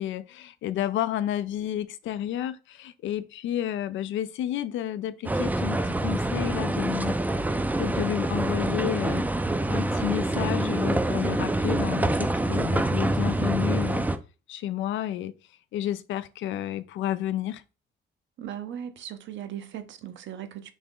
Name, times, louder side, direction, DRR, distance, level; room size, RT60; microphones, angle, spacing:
voice 1, 0.0-7.2 7.8-9.3 9.7-14.0 14.5-15.3 15.7-17.6, left 11 dB, 75° left, 0.4 m, -31 dB
sound 1, 5.2-14.2, right 1 dB, 10° right, 0.4 m, -26 dB
voice 2, 18.4-20.7, right 10 dB, 70° right, 0.6 m, -38 dB
3.4 x 2.9 x 3.6 m
cardioid pair, 90°, 20 cm